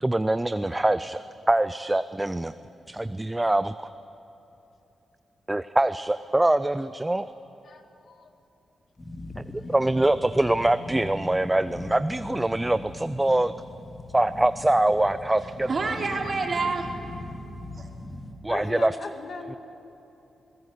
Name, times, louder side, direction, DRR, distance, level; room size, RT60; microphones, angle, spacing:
voice 1, 0.0-1.2 1.5-2.5 2.9-3.9 5.5-7.3 9.4-9.5 9.7-13.5 14.1-15.7 18.4-19.0 19.5-19.6, right 1 dB, 15° right, 13 dB, 0.5 m, -24 dB
voice 2, 7.7-8.3 18.5-19.6, left 4 dB, 60° left, 5 dB, 1.9 m, -38 dB
sound 1, 9.0-18.3, left 2 dB, 25° left, 2.3 m, -40 dB
voice 3, 15.4-16.9 17.7-17.9, right 4 dB, 50° right, 1 dB, 3.2 m, -28 dB
24.0 x 17.0 x 8.1 m, 2.9 s
cardioid pair, 85°, 0 cm